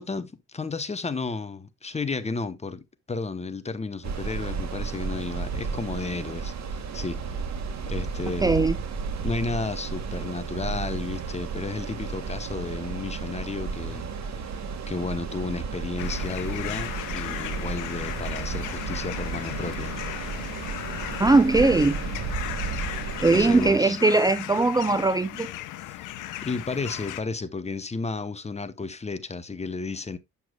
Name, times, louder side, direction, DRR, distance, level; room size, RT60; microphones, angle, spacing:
voice 1, 0.0-7.4 7.9-8.6 9.2-19.9 23.3-24.0 25.9-26.0 26.4-30.2, left 3 dB, 20° left, 0.9 m, -33 dB
sound 1, 4.0-23.7, right 5 dB, 65° right, 1.8 m, -33 dB
voice 2, 8.4-8.8 21.2-22.0 23.2-25.5, right 3 dB, 10° right, 0.5 m, -20 dB
sound 2, 16.0-27.2, left 14 dB, 90° left, 0.8 m, -36 dB
8.0 x 7.0 x 2.3 m
cardioid pair, 90°, 30 cm